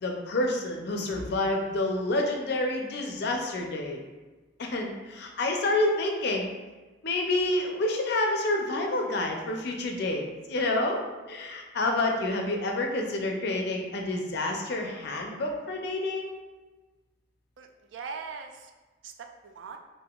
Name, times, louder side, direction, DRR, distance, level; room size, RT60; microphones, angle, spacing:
voice 1, 0.0-4.0 4.6-6.5 7.0-11.0 11.3-16.3, left 2 dB, 60° left, 2 dB, 0.5 m, -28 dB
voice 2, 17.6-18.7 19.0-19.8, right 5 dB, 80° right, 5 dB, 0.3 m, -41 dB
3.5 x 2.5 x 2.3 m, 1.2 s
head